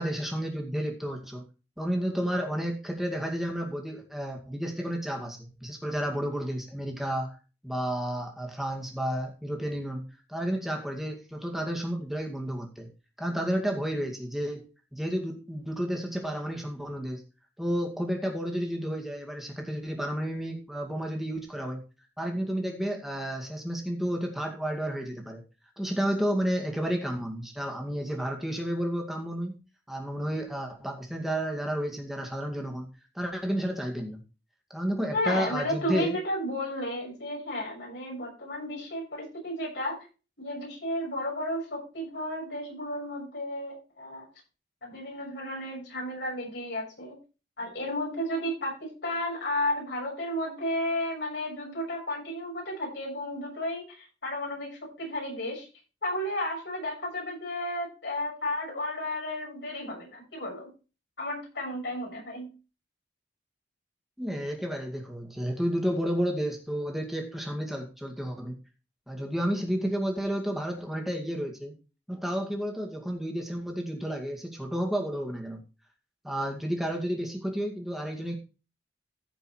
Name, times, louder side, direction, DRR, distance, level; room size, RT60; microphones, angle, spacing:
voice 1, 0.0-1.4 1.8-7.4 7.6-12.9 13.2-14.7 14.9-17.2 17.6-21.8 22.2-25.4 25.8-29.6 29.9-32.9 33.2-34.2 34.7-36.2 64.2-68.6 69.1-71.8 72.1-75.6 76.2-78.3, equal, ahead, 1 dB, 2.2 m, -31 dB
voice 2, 35.1-40.0 40.4-44.2 44.8-47.2 47.6-55.7 56.0-60.7 61.2-62.5, left 1 dB, 65° left, -2 dB, 6.7 m, -33 dB
15.0 x 5.5 x 4.4 m, 0.33 s
head